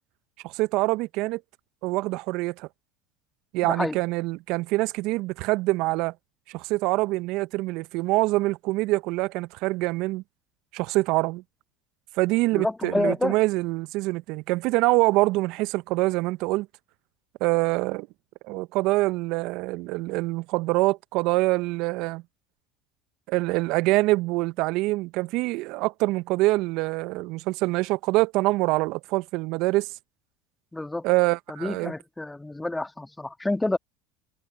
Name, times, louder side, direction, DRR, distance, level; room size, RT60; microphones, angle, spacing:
voice 1, 0.4-1.4 1.8-2.7 3.5-6.1 6.5-10.2 10.7-11.4 12.2-16.7 17.4-18.1 18.5-22.2 23.3-29.9 31.0-31.9, right 21 dB, 60° right, 1.2 m, -25 dB
voice 2, 3.6-4.0 12.5-13.4 30.7-31.0 31.5-33.8, left 2 dB, 10° left, 2.1 m, -28 dB
hypercardioid pair, 75°, 0 cm